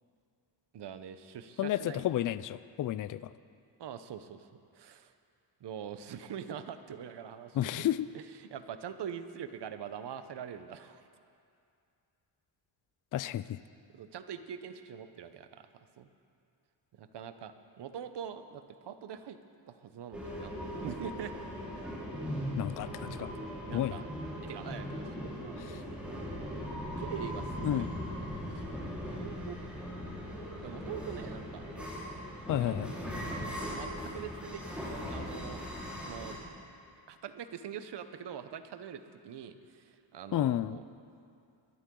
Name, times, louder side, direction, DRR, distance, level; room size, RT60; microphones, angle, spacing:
voice 1, 0.7-2.1 3.8-4.5 4.7-5.1 5.6-7.9 8.1-11.0 13.9-15.7 16.0-16.1 17.0-19.4 19.7-20.5 20.8-21.3 21.8-22.0 23.7-24.1 24.4-25.8 27.0-28.0 28.3-29.6 30.6-31.6 32.6-33.2 33.7-35.6 36.0-36.4 37.1-40.8, right 8 dB, 60° right, 10 dB, 0.9 m, -44 dB
voice 2, 1.6-3.3 7.5-8.1 13.1-13.6 22.6-23.3 23.7-24.0 25.6-25.8 27.6-27.9 32.5-32.9 40.3-40.8, left 12 dB, 45° left, 16 dB, 0.4 m, -31 dB
sound 1, 20.1-36.3, equal, ahead, 4.0 m, -39 dB
21.5 x 11.5 x 3.8 m, 2.5 s
cardioid pair, 85°, 46 cm